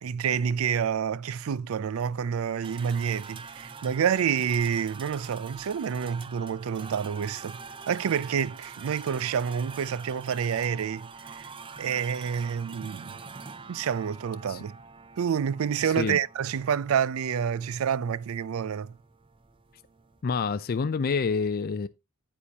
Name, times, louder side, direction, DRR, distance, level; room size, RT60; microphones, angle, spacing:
voice 1, 0.0-7.6 7.9-11.5 11.8-13.2 13.7-14.8 15.2-18.9, right 7 dB, 75° right, 0.4 m, -28 dB
sound 1, 2.6-20.2, right 5 dB, 25° right, 0.5 m, -45 dB
voice 2, 20.2-21.9, left 5 dB, 45° left, 0.4 m, -27 dB
9.6 x 8.5 x 2.8 m
head